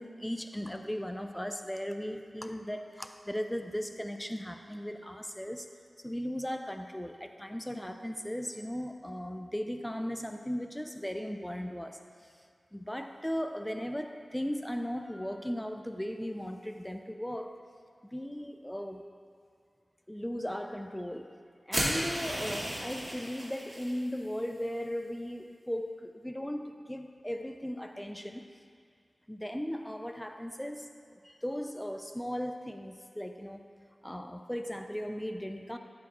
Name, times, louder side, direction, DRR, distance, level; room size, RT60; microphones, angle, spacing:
voice 1, 0.0-5.7 6.0-12.0 12.7-17.6 18.0-19.1 20.1-21.4 21.7-28.5 29.3-33.6 34.0-35.8, equal, 5° left, 6 dB, 0.4 m, -37 dB
sound 1, 21.7-23.9, right 1 dB, 30° right, 2.0 m, -34 dB
12.0 x 4.7 x 4.1 m, 2.3 s
wide cardioid pair, 105°, 0 cm